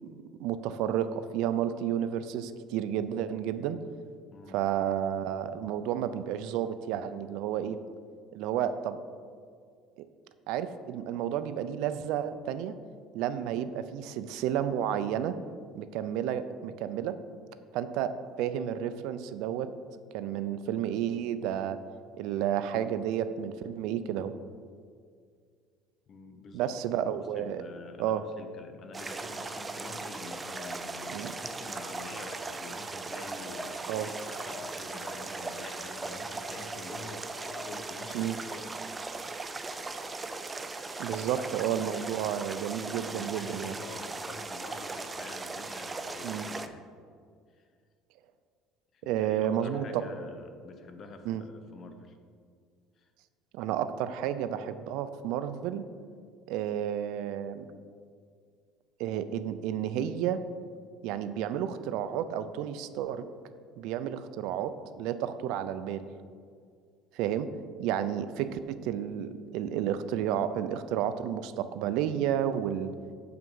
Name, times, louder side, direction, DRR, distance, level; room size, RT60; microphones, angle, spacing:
voice 1, 0.4-3.8 4.5-7.8 8.3-9.0 10.5-12.8 13.1-15.4 15.7-17.2 17.7-19.7 20.1-21.8 22.2-24.3 26.5-27.6 28.0-28.2 31.1-31.3 33.9-34.1 38.1-38.4 41.0-43.7 46.2-46.5 49.0-50.1 51.3-51.4 53.5-55.8 56.5-57.7 59.0-60.4 61.0-63.2 63.8-66.1 67.1-67.5 67.8-72.9, right 10 dB, 75° right, 12 dB, 0.4 m, -31 dB
voice 2, 4.3-4.6 26.1-39.1 41.1-41.5 42.9-46.8 47.5-47.7 48.9-52.2 53.0-53.1, left 3 dB, 40° left, 7 dB, 0.9 m, -47 dB
sound 1, 28.9-46.7, right 3 dB, 15° right, 0.4 m, -38 dB
sound 2, 29.9-38.9, left 2 dB, 70° left, 2.4 m, -51 dB
7.7 x 5.9 x 5.5 m, 2.1 s
cardioid pair, 130°, 0 cm